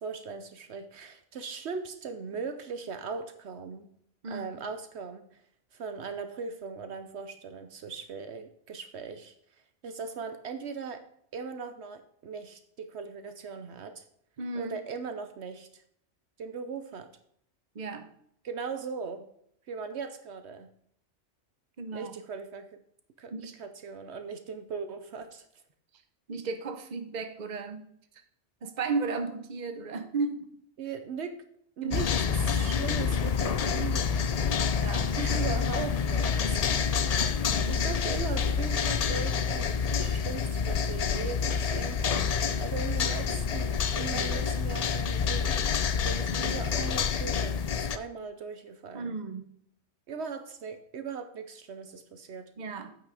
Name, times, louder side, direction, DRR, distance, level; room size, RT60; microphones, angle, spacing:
voice 1, 0.0-3.9 4.3-5.3 5.7-9.3 9.8-11.1 11.3-14.0 14.6-15.8 16.4-17.1 18.4-19.2 19.7-20.7 21.9-22.8 23.2-25.4 30.8-31.4 31.8-34.9 35.1-36.9 37.3-49.2 50.1-52.5, right 5 dB, 70° right, 9 dB, 1.0 m, -39 dB
voice 2, 14.4-14.8 17.7-18.1 21.8-22.1 23.3-23.6 26.3-27.9 28.1-28.2 28.6-30.5 31.8-32.1 32.9-33.0 34.8-35.1 37.4-37.9 46.3-46.6 48.9-49.5 52.6-53.0, right 4 dB, 40° right, 8 dB, 1.0 m, -35 dB
sound 1, 31.9-48.0, left 6 dB, 55° left, 0.4 m, -28 dB
8.7 x 6.1 x 4.8 m, 0.69 s
omnidirectional pair, 1.2 m